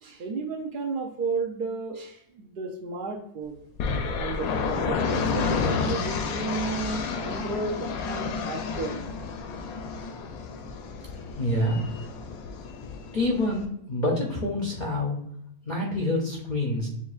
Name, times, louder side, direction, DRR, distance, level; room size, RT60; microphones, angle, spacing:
voice 1, 0.0-3.6 4.2-9.1, right 4 dB, 75° right, 3 dB, 0.4 m, -33 dB
sound 1, 3.8-13.7, left 5 dB, 80° left, 1.0 m, -30 dB
voice 2, 11.2-11.8 13.1-15.2 15.6-16.9, left 1 dB, 45° left, -2 dB, 0.6 m, -27 dB
7.1 x 2.6 x 2.4 m, 0.74 s
omnidirectional pair, 1.5 m